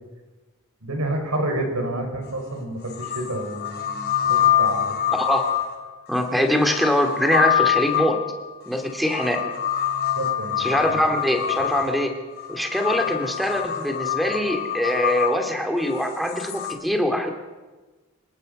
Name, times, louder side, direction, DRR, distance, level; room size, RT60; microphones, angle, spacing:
voice 1, 0.8-5.0 10.2-10.5 10.9-11.0, right 1 dB, 85° right, 3 dB, 5.3 m, -29 dB
sound 1, 2.2-2.3 2.9-16.7, left 10 dB, 50° left, 3.8 m, -26 dB
voice 2, 5.1-5.5 6.1-8.2 8.7-9.4 10.6-12.1 12.5-17.3, equal, ahead, 4 dB, 2.5 m, -23 dB
28.0 x 18.5 x 5.4 m, 1.3 s
head